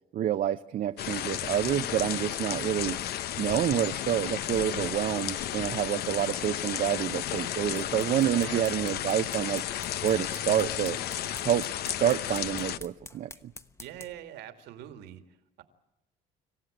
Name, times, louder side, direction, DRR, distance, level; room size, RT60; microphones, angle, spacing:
voice 1, 0.1-3.0 3.4-11.0 11.4-13.3, right 11 dB, 55° right, 8 dB, 0.7 m, -28 dB
sound 1, 1.0-12.8, left 11 dB, 70° left, 0.9 m, -33 dB
sound 2, 7.5-14.3, left 2 dB, 15° left, 1.1 m, -48 dB
voice 2, 13.8-15.2, right 11 dB, 85° right, 8 dB, 2.3 m, -43 dB
26.5 x 15.5 x 9.0 m, 0.94 s
cardioid pair, 110°, 17 cm